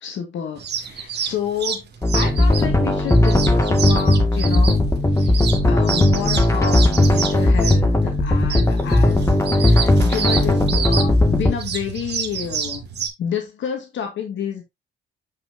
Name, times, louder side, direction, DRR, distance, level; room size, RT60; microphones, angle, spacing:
voice 1, 0.0-1.8 2.1-4.8 5.1-5.4 5.7-12.8 13.2-14.6, left 7 dB, 70° left, 1.9 m, -29 dB
sound 1, 0.6-13.1, right 7 dB, 55° right, 1.7 m, -29 dB
sound 2, 2.0-11.5, left 1 dB, 15° left, 1.8 m, -17 dB
7.8 x 5.8 x 2.6 m
cardioid pair, 90°, 20 cm